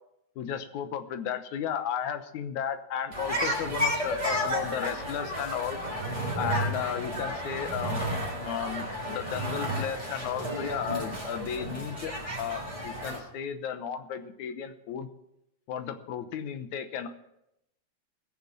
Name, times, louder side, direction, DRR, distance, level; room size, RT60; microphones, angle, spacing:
voice 1, 0.4-5.8 6.4-8.0 8.4-15.1 15.7-17.1, left 8 dB, 70° left, 9 dB, 2.3 m, -34 dB
sound 1, 3.1-13.2, equal, 10° right, 3.8 m, -32 dB
20.0 x 6.8 x 7.0 m, 0.83 s
omnidirectional pair, 3.7 m